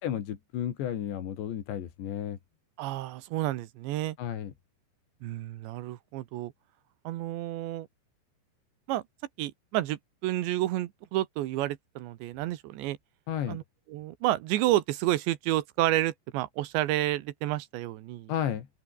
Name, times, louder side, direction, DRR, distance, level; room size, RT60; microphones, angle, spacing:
voice 1, 0.0-2.4 4.2-4.5 13.3-13.6 18.3-18.7, left 10 dB, 70° left, 4.6 m, -32 dB
voice 2, 2.8-4.2 5.2-6.5 7.0-7.9 8.9-9.0 9.4-13.0 13.5-13.6 13.9-18.3, right 15 dB, 80° right, 3.4 m, -30 dB
open air
omnidirectional pair, 5.3 m